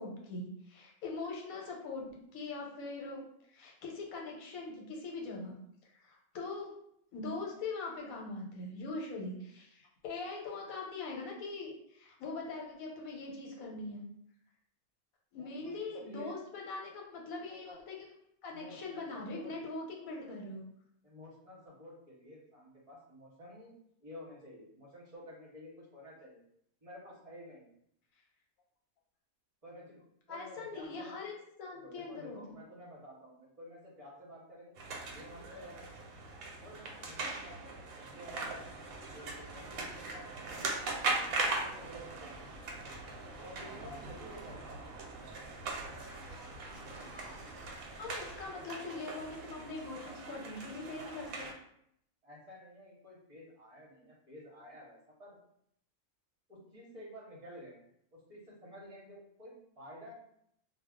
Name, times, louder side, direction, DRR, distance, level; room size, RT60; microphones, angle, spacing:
voice 1, 0.0-3.3 3.5-5.6 6.0-6.7 7.1-14.1 15.3-18.0 18.4-20.6 30.3-32.6 48.0-51.5, left 3 dB, 80° left, -1 dB, 1.1 m, -42 dB
voice 2, 15.4-15.7 16.0-16.4 18.5-19.6 21.0-23.7 24.0-26.4 26.8-27.7 29.6-30.0 30.3-31.2 31.7-34.7 35.0-35.9 36.6-38.8 39.1-42.4 43.4-44.9 48.5-49.0 52.2-55.4 56.5-57.8 58.1-60.2, left 1 dB, 30° right, -4 dB, 0.7 m, -52 dB
sound 1, 34.8-51.5, right 3 dB, 90° right, 1.1 m, -40 dB
sound 2, 38.4-48.5, equal, 45° left, 0.6 m, -56 dB
2.3 x 2.2 x 3.5 m, 0.72 s
omnidirectional pair, 1.5 m